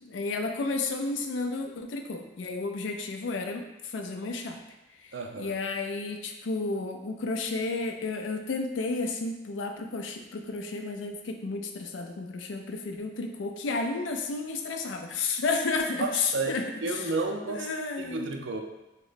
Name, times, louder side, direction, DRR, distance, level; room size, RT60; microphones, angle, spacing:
voice 1, 0.0-4.6 5.0-17.1 17.5-18.3, left 3 dB, 75° left, 5 dB, 0.4 m, -32 dB
voice 2, 5.1-5.6 16.0-17.7 18.0-18.6, right 3 dB, 70° right, 3 dB, 0.4 m, -32 dB
3.0 x 2.1 x 3.9 m, 0.96 s
head